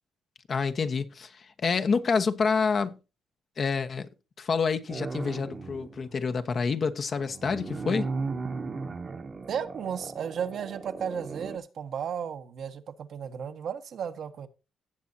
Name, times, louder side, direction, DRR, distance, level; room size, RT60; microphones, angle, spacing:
voice 1, 0.5-3.0 3.6-4.1 4.4-8.1, left 5 dB, 45° left, 1.2 m, -28 dB
sound 1, 4.9-6.0 7.1-11.6, right 4 dB, 35° right, 1.2 m, -36 dB
voice 2, 9.5-14.5, right 7 dB, 65° right, 1.3 m, -34 dB
17.0 x 7.4 x 2.7 m
cardioid pair, 90°, 0 cm